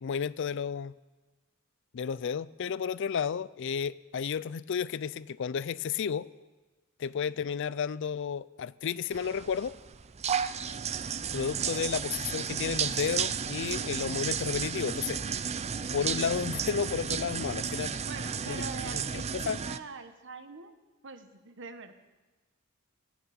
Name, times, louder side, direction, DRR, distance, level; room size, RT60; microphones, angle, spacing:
voice 1, 0.0-0.9 1.9-6.3 7.0-9.8 11.3-15.2 15.9-17.9 18.5-18.6 19.3-19.6, left 7 dB, 60° left, 19 dB, 0.4 m, -32 dB
sound 1, 9.1-19.8, right 7 dB, 30° right, 0.5 m, -33 dB
voice 2, 18.0-20.8 21.0-21.9, right 4 dB, 60° right, 9 dB, 1.2 m, -44 dB
16.0 x 8.3 x 8.7 m, 1.2 s
head